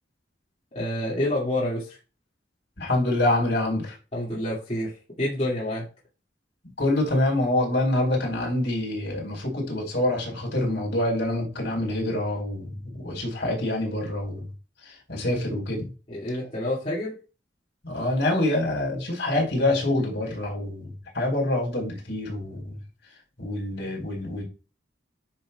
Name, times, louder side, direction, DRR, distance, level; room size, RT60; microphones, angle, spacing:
voice 1, 0.7-2.0 4.1-4.9 5.2-5.9 16.1-17.2, left 1 dB, 35° left, -7 dB, 2.3 m, -28 dB
voice 2, 2.8-4.0 6.8-14.5 14.9-15.9 17.8-22.8 23.4-24.4, left 1 dB, 65° left, -1 dB, 4.3 m, -26 dB
10.0 x 5.6 x 2.4 m, 0.33 s
head